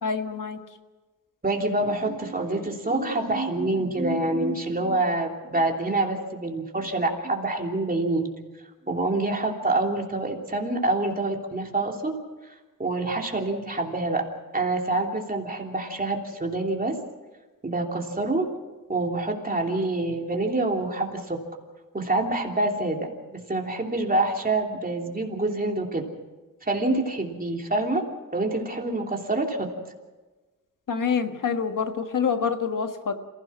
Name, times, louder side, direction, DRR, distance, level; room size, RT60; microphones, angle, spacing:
voice 1, 0.0-0.6 30.9-33.1, left 6 dB, 65° left, 7 dB, 1.6 m, -26 dB
voice 2, 1.4-8.3 8.9-12.1 12.8-14.2 14.5-17.0 17.6-18.5 18.9-21.4 21.9-26.0 26.6-28.0 28.3-29.7, right 2 dB, 25° right, 1 dB, 3.1 m, -26 dB
28.0 x 16.5 x 6.2 m, 1.2 s
wide cardioid pair, 130°, 34 cm